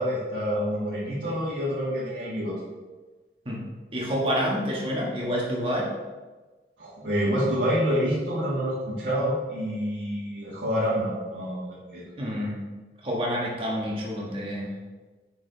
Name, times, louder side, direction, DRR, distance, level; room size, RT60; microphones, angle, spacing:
voice 1, 0.0-2.6 6.8-12.1, equal, 80° right, -10 dB, 1.7 m, -27 dB
voice 2, 3.9-5.9 12.2-12.6 13.0-14.7, equal, 30° right, -3 dB, 1.4 m, -28 dB
5.9 x 4.7 x 3.9 m, 1.3 s
head